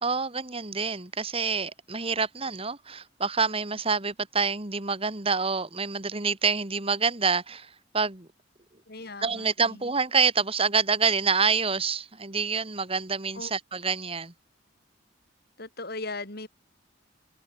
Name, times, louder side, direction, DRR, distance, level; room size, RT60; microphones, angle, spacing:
voice 1, 0.0-8.3 9.2-14.3, right 5 dB, 30° right, 2.2 m, -27 dB
voice 2, 8.9-9.8 13.3-13.5 15.6-16.5, left 3 dB, 55° left, 4.6 m, -38 dB
head